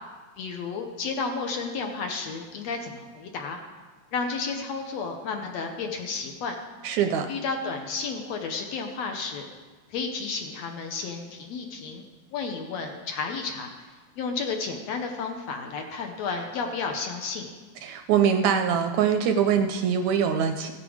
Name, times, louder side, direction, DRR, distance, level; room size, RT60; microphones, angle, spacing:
voice 1, 0.4-3.6 4.1-6.6 7.3-9.5 9.9-12.1 12.3-13.9 14.2-17.5, left 4 dB, 70° left, 3 dB, 1.8 m, -32 dB
voice 2, 6.8-7.3 17.8-20.7, right 7 dB, 80° right, 6 dB, 1.7 m, -23 dB
16.0 x 6.9 x 5.0 m, 1.4 s
omnidirectional pair, 3.6 m